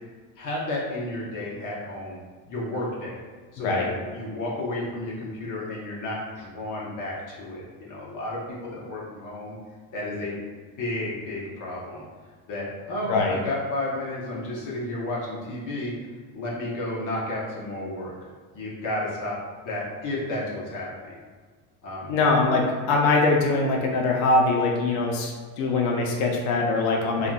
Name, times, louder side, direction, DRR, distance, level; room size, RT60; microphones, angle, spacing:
voice 1, 0.4-2.2 2.4-3.2 3.5-9.6 9.9-10.4 10.8-12.0 12.5-15.9 16.3-18.1 18.5-19.4 19.6-21.2 21.8-22.1 27.2-27.3, left 1 dB, 45° left, -5 dB, 1.0 m, -32 dB
voice 2, 13.1-13.4 22.1-27.3, left 3 dB, 75° left, 0 dB, 0.7 m, -22 dB
3.6 x 2.3 x 2.4 m, 1.5 s
supercardioid pair, 110°, 44 cm